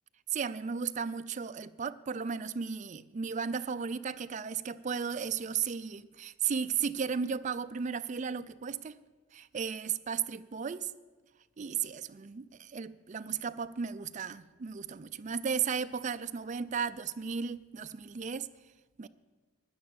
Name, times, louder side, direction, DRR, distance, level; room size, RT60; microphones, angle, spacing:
voice 1, 0.3-9.0 9.3-10.9 11.6-12.4 12.7-18.5 19.0-19.1, right 6 dB, 35° right, 0.4 m, -35 dB
11.5 x 9.5 x 7.1 m
head